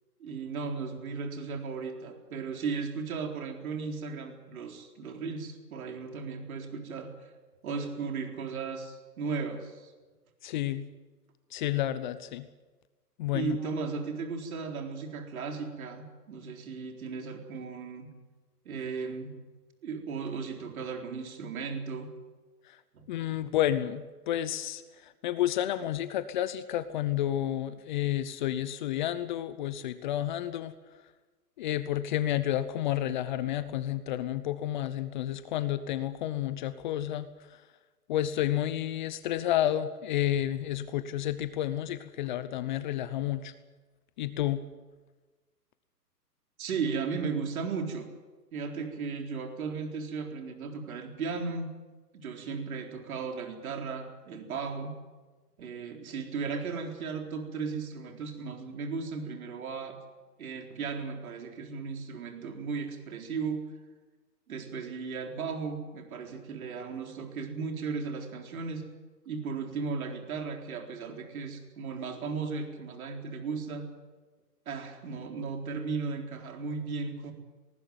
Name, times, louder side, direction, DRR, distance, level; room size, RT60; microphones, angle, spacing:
voice 1, 0.2-7.3 7.6-9.9 13.3-18.1 18.7-19.4 19.8-22.1 22.9-23.1 46.6-48.1 48.5-51.7 52.1-54.9 55.6-60.0 60.4-63.6 64.5-68.8 69.3-73.9 74.7-77.3, right 5 dB, 60° right, 3 dB, 4.1 m, -36 dB
voice 2, 10.4-10.9 11.5-12.5 13.2-13.6 22.7-22.8 23.1-30.7 31.6-37.3 38.1-43.5 44.2-44.6, left 12 dB, 30° left, 13 dB, 0.9 m, -30 dB
20.5 x 18.5 x 9.3 m, 1.3 s
hypercardioid pair, 130°, 48 cm